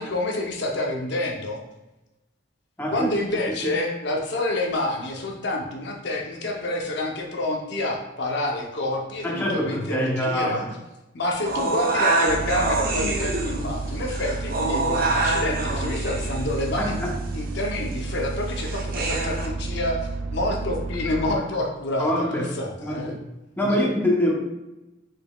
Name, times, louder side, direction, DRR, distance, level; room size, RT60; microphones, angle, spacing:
voice 1, 0.0-1.6 2.9-10.6 11.1-17.0 17.3-23.1 23.6-23.8, left 1 dB, 60° left, 1 dB, 0.7 m, -28 dB
voice 2, 2.8-3.1 3.6-3.7 9.2-10.7 16.8-17.2 22.0-22.5 22.8-23.2 23.6-24.3, equal, 10° left, -3 dB, 0.7 m, -24 dB
sound 1, 11.5-19.5, right 2 dB, 45° right, 0.7 m, -26 dB
sound 2, 12.3-21.4, right 3 dB, 90° right, 0.3 m, -31 dB
4.9 x 4.3 x 2.2 m, 0.98 s
head